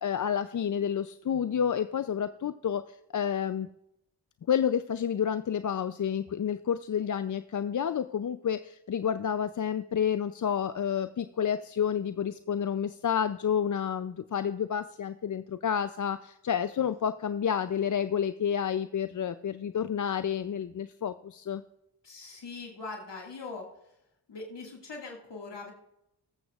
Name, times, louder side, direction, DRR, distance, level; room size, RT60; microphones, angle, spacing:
voice 1, 0.0-3.7 4.5-21.6, left 8 dB, 45° left, 12 dB, 0.5 m, -30 dB
voice 2, 22.0-23.7 24.3-25.7, left 3 dB, 75° left, -1 dB, 2.0 m, -41 dB
20.0 x 7.9 x 2.4 m, 0.83 s
cardioid pair, 45°, 42 cm